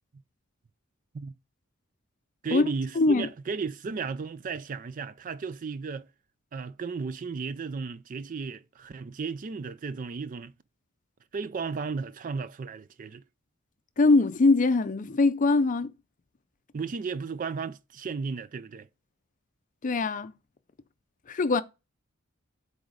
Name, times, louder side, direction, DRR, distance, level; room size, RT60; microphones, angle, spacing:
voice 1, 2.4-6.1 6.5-10.5 11.3-13.2 16.7-18.9, right 5 dB, 40° right, 0.4 m, -34 dB
voice 2, 3.0-3.3 14.0-15.9 19.8-20.3 21.3-21.6, left 3 dB, 40° left, 0.5 m, -22 dB
7.9 x 3.5 x 5.0 m
head